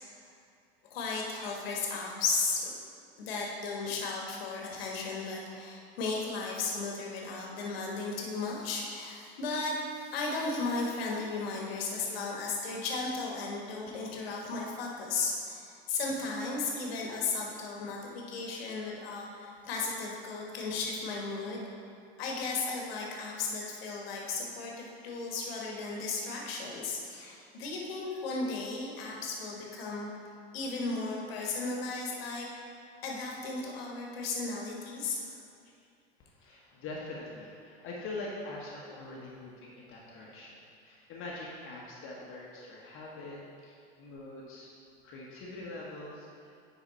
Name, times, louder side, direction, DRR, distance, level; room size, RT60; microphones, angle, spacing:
voice 1, 0.9-2.7 3.2-21.7 22.2-30.1 30.5-32.5 33.0-35.4, left 3 dB, 65° left, -1 dB, 1.4 m, -35 dB
voice 2, 36.2-40.6 40.8-44.7 45.0-46.6, left 2 dB, 40° left, -4 dB, 1.2 m, -43 dB
9.8 x 4.0 x 4.1 m, 2.4 s
hypercardioid pair, 85°, 31 cm